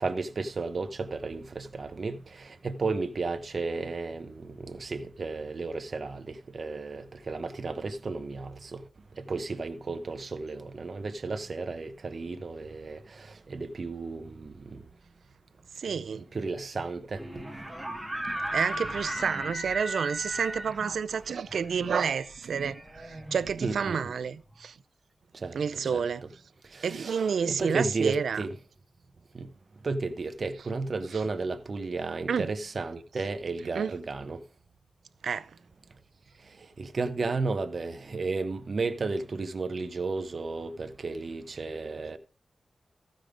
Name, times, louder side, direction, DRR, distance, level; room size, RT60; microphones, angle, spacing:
voice 1, 0.0-2.2 2.6-8.8 9.3-13.0 13.5-14.8 15.9-16.0 16.3-17.2 23.6-24.1 25.4-25.6 25.9-26.0 26.7-28.6 29.3-29.5 29.8-34.4 36.8-42.2, right 3 dB, 45° right, 0.9 m, -33 dB
voice 2, 15.8-16.2 18.5-24.8 25.5-26.2 26.8-28.4 32.3-32.5 33.7-33.9 35.2-35.5, right 6 dB, 90° right, 0.5 m, -29 dB
sound 1, 17.1-24.0, right 1 dB, 5° right, 1.3 m, -36 dB
15.0 x 5.2 x 5.0 m
wide cardioid pair, 165°, 0 cm